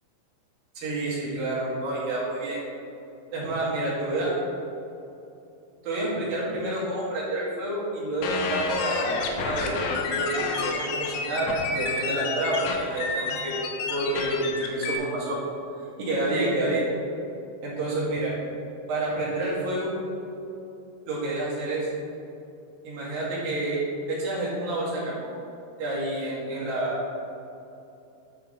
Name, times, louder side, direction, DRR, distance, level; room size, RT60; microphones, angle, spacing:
voice 1, 0.7-2.6 3.3-4.3 5.8-9.7 10.1-13.5 13.9-15.4 16.0-16.8 17.6-18.3 18.9-19.9 21.1-21.9 22.8-25.3 25.8-27.2, right 1 dB, 55° right, -7 dB, 3.4 m, -28 dB
sound 1, 8.2-15.0, left 4 dB, 90° left, 3.4 m, -30 dB
11.5 x 5.6 x 3.9 m, 2.8 s
omnidirectional pair, 5.5 m